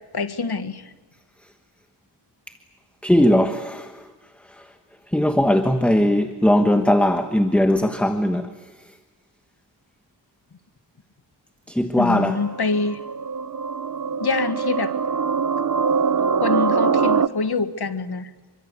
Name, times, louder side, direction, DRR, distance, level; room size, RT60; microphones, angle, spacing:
voice 1, 0.1-0.9 12.0-13.0 14.2-15.0 16.4-18.3, left 4 dB, 60° left, 9 dB, 1.7 m, -25 dB
voice 2, 3.0-4.0 4.5-4.6 5.1-8.5 11.7-12.4, left 1 dB, 5° left, 7 dB, 1.3 m, -19 dB
sound 1, 12.2-17.3, right 5 dB, 45° right, 0.8 m, -23 dB
28.0 x 24.0 x 8.3 m, 1.2 s
wide cardioid pair, 110°, 44 cm